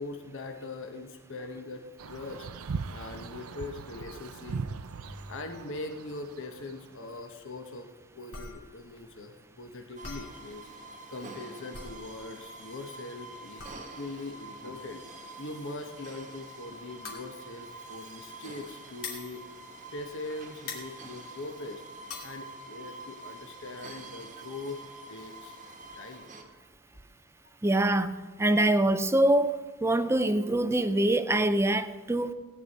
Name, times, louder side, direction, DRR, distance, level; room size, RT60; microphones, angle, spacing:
voice 1, 0.0-2.5 2.9-4.6 5.3-7.9 8.2-15.0 15.4-19.4 19.9-21.8 22.2-24.8 25.1-26.3 26.9-27.1, left 2 dB, 60° left, 1.0 m, -41 dB
sound 1, 2.0-7.1, right 5 dB, 65° right, 0.5 m, -39 dB
sound 2, 8.3-20.3 20.6-22.4, left 4 dB, 75° left, 2.7 m, -45 dB
sound 3, 10.0-26.4, right 2 dB, 35° right, 1.1 m, -46 dB
voice 2, 27.6-29.5 29.8-32.3, right 1 dB, 10° right, 0.4 m, -24 dB
16.5 x 9.7 x 4.1 m
head